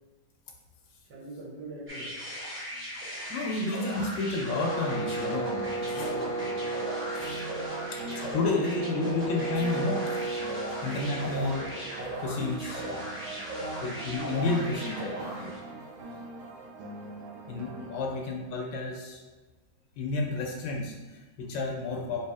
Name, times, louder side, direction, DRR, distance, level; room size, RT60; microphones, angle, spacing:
voice 1, 1.1-2.2 5.7-6.4 14.6-14.9, right 2 dB, 60° right, -5 dB, 1.6 m, -44 dB
sound 1, 1.9-15.7, equal, 15° right, 0.4 m, -38 dB
voice 2, 3.3-6.6 7.1-7.4 7.9-10.2 10.5-11.9 12.2-12.8 13.8-15.5 17.5-19.2 20.0-22.3, left 3 dB, 70° left, 0 dB, 1.4 m, -31 dB
sound 2, 4.4-12.2, right 3 dB, 35° left, 1.0 m, -35 dB
sound 3, 5.2-18.0, right 2 dB, 80° right, 1.4 m, -42 dB
3.3 x 3.1 x 4.6 m, 1.2 s
omnidirectional pair, 2.2 m